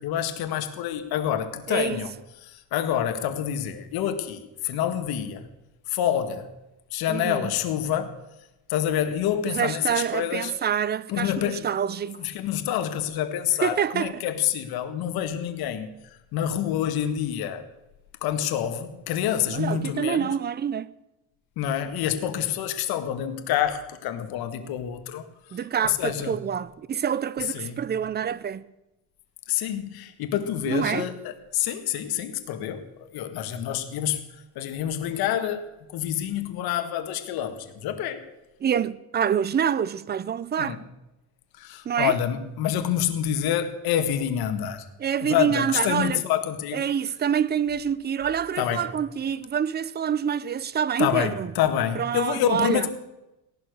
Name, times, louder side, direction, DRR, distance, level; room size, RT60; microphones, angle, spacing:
voice 1, 0.0-2.1 2.4-5.5 5.9-6.5 6.9-8.1 8.7-10.5 11.1-11.7 12.2-15.9 16.3-17.6 18.2-20.3 21.6-26.4 27.5-27.9 29.5-34.2 34.6-38.2 40.6-40.8 41.6-44.9 45.2-46.8 48.6-48.9 51.0-52.9, left 10 dB, 65° left, 2.0 m, -27 dB
voice 2, 1.7-2.0 7.1-7.5 9.5-12.2 13.6-14.1 19.5-20.9 25.5-28.7 30.7-31.1 38.6-40.8 41.8-42.1 45.0-46.2 46.7-51.5 51.9-52.9, right 8 dB, 25° right, 0.6 m, -26 dB
17.5 x 12.0 x 6.6 m
cardioid pair, 130°, 40 cm